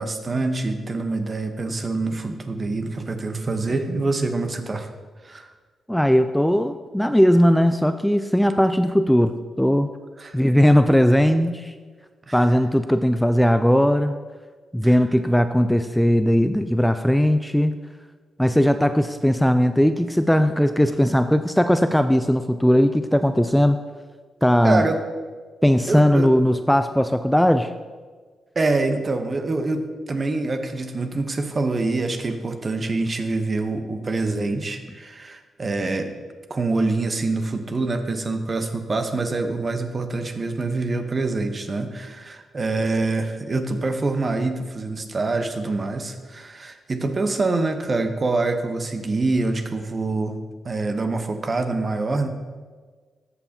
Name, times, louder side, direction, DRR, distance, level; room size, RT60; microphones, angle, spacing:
voice 1, 0.0-4.9 5.2-5.5 10.2-10.4 12.3-12.4 14.8-14.9 24.6-25.0 25.9-26.3 28.5-36.1 36.5-50.4 50.6-52.3, right 3 dB, 45° right, 7 dB, 0.9 m, -25 dB
voice 2, 5.9-9.9 10.3-11.7 12.3-14.2 14.7-17.7 18.4-23.8 24.4-24.8 25.6-27.7, equal, 5° left, 9 dB, 0.4 m, -18 dB
14.0 x 5.6 x 2.8 m, 1.5 s
hypercardioid pair, 40°, 0 cm